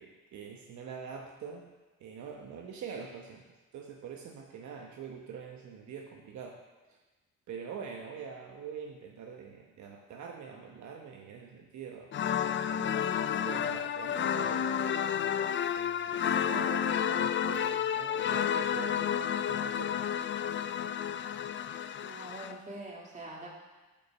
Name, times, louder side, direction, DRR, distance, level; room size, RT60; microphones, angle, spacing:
voice 1, 0.0-1.6 2.0-3.4 3.7-6.6 7.5-12.1 12.7-14.7 15.7-20.0, right 6 dB, 70° right, 1 dB, 1.0 m, -44 dB
sound 1, 12.1-22.5, left 9 dB, 40° left, 0.4 m, -31 dB
voice 2, 22.0-23.5, right 1 dB, 25° right, -3 dB, 2.5 m, -44 dB
8.9 x 5.6 x 6.1 m, 1.2 s
cardioid pair, 90°, 30 cm